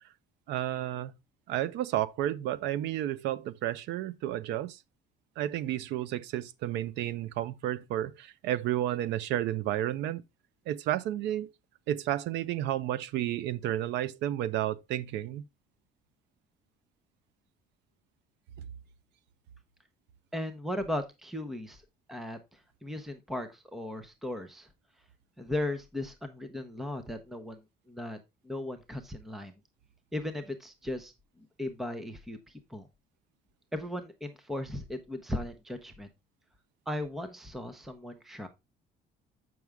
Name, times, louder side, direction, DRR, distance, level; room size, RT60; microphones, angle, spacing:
voice 1, 0.5-1.1 1.5-4.8 5.4-10.2 10.7-11.5 11.9-15.4, right 13 dB, 85° right, 0.7 m, -31 dB
voice 2, 20.3-21.8 22.1-24.7 25.4-27.6 27.9-29.6 30.1-32.9 33.7-36.1 36.9-38.5, left 1 dB, ahead, 0.7 m, -37 dB
7.8 x 6.1 x 3.4 m
cardioid pair, 165°, 18 cm